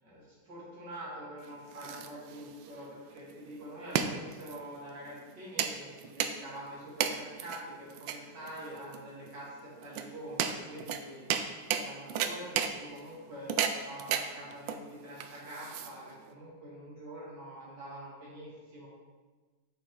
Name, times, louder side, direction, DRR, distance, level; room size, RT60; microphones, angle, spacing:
voice 1, 0.0-18.9, right 1 dB, 65° right, -7 dB, 3.4 m, -45 dB
sound 1, 1.4-16.3, right 8 dB, 85° right, 1.4 m, -35 dB
8.7 x 6.6 x 3.8 m, 1.3 s
omnidirectional pair, 2.0 m